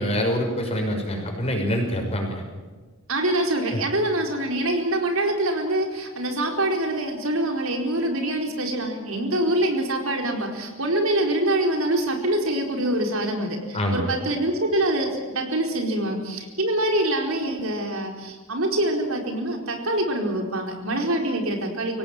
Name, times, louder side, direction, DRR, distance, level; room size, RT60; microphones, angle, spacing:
voice 1, 0.0-2.4 3.7-3.8 13.7-14.0, equal, 30° left, 2 dB, 5.8 m, -25 dB
voice 2, 3.1-22.0, right 1 dB, 75° right, 2 dB, 4.5 m, -25 dB
25.5 x 17.5 x 9.1 m, 1.3 s
head